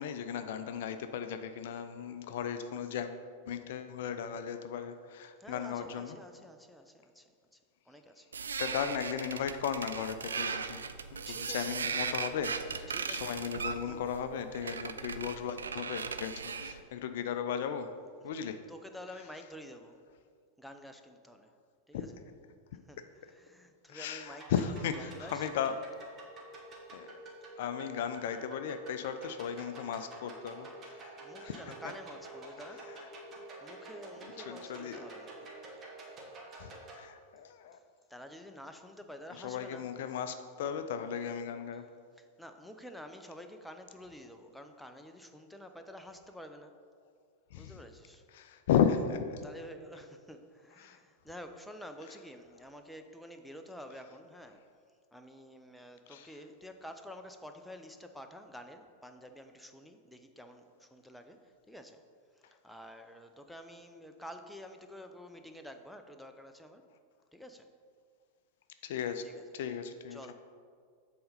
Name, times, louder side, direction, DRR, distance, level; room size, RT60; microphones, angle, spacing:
voice 1, 0.0-3.1 3.5-6.2 8.6-10.8 11.3-16.3 16.6-17.9 18.2-18.6 21.9-22.0 23.9-25.8 26.9-27.1 27.6-31.1 31.4-31.6 34.5-35.1 36.6-37.8 39.4-41.8 47.5-47.7 48.3-49.5 50.8-51.0 56.1-56.3 68.8-69.2 69.5-70.2, left 8 dB, 55° left, 9 dB, 0.4 m, -35 dB
voice 2, 5.4-7.6 7.9-8.3 11.3-11.8 12.9-13.3 13.6-14.0 14.8-15.1 16.8-17.0 18.2-18.3 18.7-20.0 20.6-21.5 21.9-22.2 22.9-25.5 31.2-32.9 33.6-35.4 37.7-37.8 38.1-39.9 41.7-41.8 42.2-46.7 47.6-48.2 49.4-54.6 55.1-62.0 62.3-66.8 67.3-67.7 69.2-69.4 70.1-70.3, equal, ahead, 6 dB, 0.5 m, -49 dB
sound 1, 8.3-16.8, right 5 dB, 70° right, 0.3 m, -38 dB
sound 2, 24.2-37.0, right 2 dB, 25° right, 1.3 m, -49 dB
7.7 x 4.2 x 5.4 m, 2.1 s
figure-of-eight pair, 90°, 0 cm